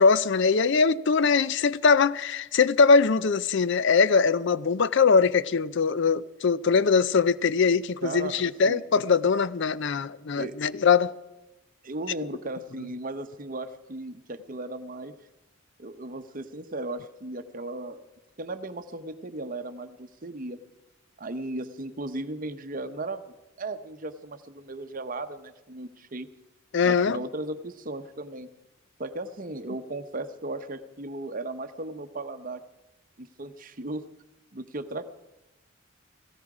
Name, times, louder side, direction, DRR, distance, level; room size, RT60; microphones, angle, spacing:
voice 1, 0.0-11.1 26.7-27.2, left 5 dB, 55° left, 0.5 m, -22 dB
voice 2, 8.0-8.8 10.3-10.6 11.8-15.1 15.8-18.0 18.4-20.6 21.2-23.3 23.6-26.3 26.8-28.5 29.0-32.6 33.2-34.1 34.5-35.1, right 2 dB, 40° right, 0.9 m, -36 dB
17.5 x 16.5 x 4.9 m
head